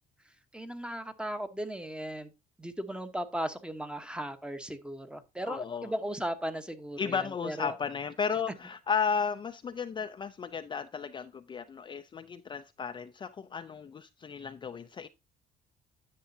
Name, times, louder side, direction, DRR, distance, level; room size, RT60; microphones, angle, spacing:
voice 1, 0.5-2.3 2.6-7.7, right 1 dB, 5° right, 1.0 m, -37 dB
voice 2, 5.5-5.9 7.0-15.1, left 6 dB, 30° left, 0.4 m, -34 dB
10.0 x 6.8 x 2.7 m
cardioid pair, 110°, 17 cm